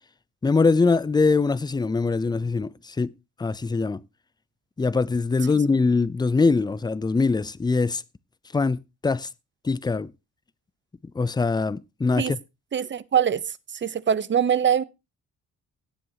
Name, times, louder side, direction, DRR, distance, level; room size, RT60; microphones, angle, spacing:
voice 1, 0.4-3.1 3.4-4.0 4.8-8.0 8.5-9.3 9.6-10.1 11.1-12.4, left 4 dB, 15° left, 0.5 m, -22 dB
voice 2, 12.7-14.8, right 8 dB, 40° right, 0.8 m, -23 dB
17.0 x 7.5 x 2.8 m
cardioid pair, 90°, 30 cm